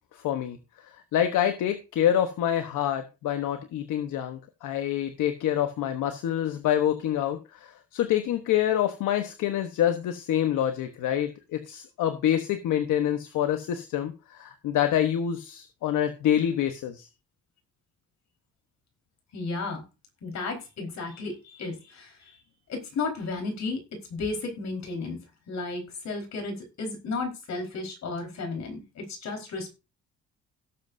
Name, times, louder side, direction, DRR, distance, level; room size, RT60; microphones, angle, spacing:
voice 1, 0.1-0.6 0.9-17.1, left 10 dB, 85° left, 7 dB, 1.2 m, -26 dB
voice 2, 19.3-19.8 20.2-22.3 22.7-23.8 24.1-29.7, left 3 dB, 65° left, 3 dB, 4.6 m, -33 dB
17.5 x 7.8 x 2.7 m, 0.28 s
cardioid pair, 90°, 30 cm